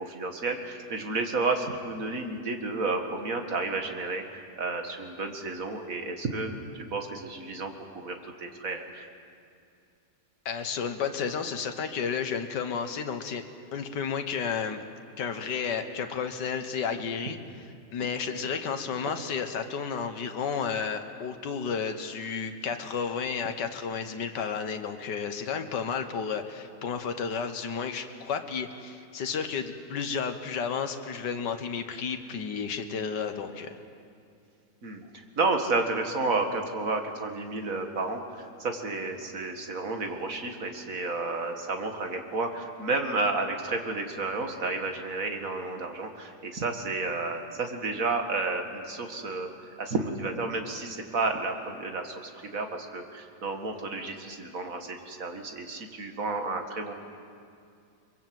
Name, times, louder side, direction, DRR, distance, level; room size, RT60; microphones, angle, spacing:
voice 1, 0.0-9.1 34.8-49.5 49.8-56.9, right 3 dB, 50° right, 4 dB, 2.3 m, -31 dB
voice 2, 10.5-13.4 13.7-14.8 15.2-17.4 17.9-33.8, left 6 dB, 80° left, 7 dB, 1.9 m, -32 dB
23.5 x 22.5 x 7.8 m, 2.4 s
omnidirectional pair, 1.8 m